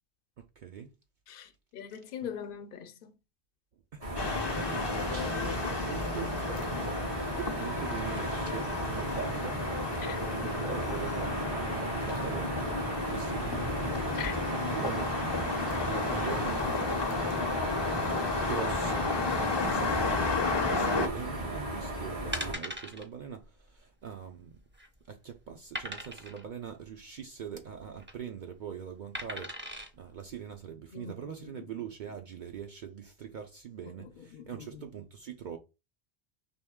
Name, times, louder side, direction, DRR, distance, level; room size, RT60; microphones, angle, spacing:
voice 1, 0.4-0.9 2.2-2.3 3.9-4.1 4.6-9.6 10.4-11.5 12.0-12.6 13.1-13.6 14.7-15.5 15.8-17.4 18.4-20.3 20.6-24.6 25.1-35.6, right 7 dB, 55° right, 0.6 m, -42 dB
voice 2, 1.3-3.1 10.0-10.2 14.2-14.3 30.9-31.7 33.8-34.9, left 8 dB, 60° left, 0.8 m, -42 dB
sound 1, 4.0-22.5, right 1 dB, 85° right, 2.4 m, -35 dB
sound 2, 4.2-21.1, left 3 dB, 30° left, 0.6 m, -32 dB
sound 3, 22.3-23.0 23.4-23.6 23.8-23.9 24.5-25.0 25.7-26.4 27.8-28.1 29.1-29.9 30.5-30.6, equal, 15° right, 0.6 m, -39 dB
4.3 x 3.1 x 3.5 m
omnidirectional pair, 1.0 m